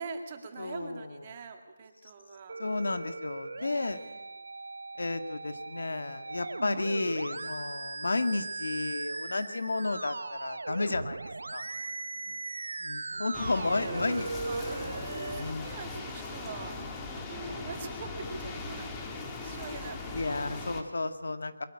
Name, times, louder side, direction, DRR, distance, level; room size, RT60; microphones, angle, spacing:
voice 1, 0.0-2.6 3.6-4.3 13.1-16.8 17.1-20.0 20.3-20.7, right 4 dB, 30° right, 5 dB, 2.3 m, -43 dB
voice 2, 0.6-1.1 2.6-4.0 5.0-11.7 12.3-12.4 12.8-14.3 15.4-15.8 20.1-21.6, left 3 dB, 75° left, 9 dB, 1.9 m, -32 dB
Musical instrument, 2.5-15.5, right 3 dB, 75° right, 0.9 m, -39 dB
sound 1, 13.3-20.8, left 3 dB, 10° left, 1.9 m, -39 dB
22.5 x 13.0 x 9.8 m, 1.1 s
figure-of-eight pair, 170°, 0 cm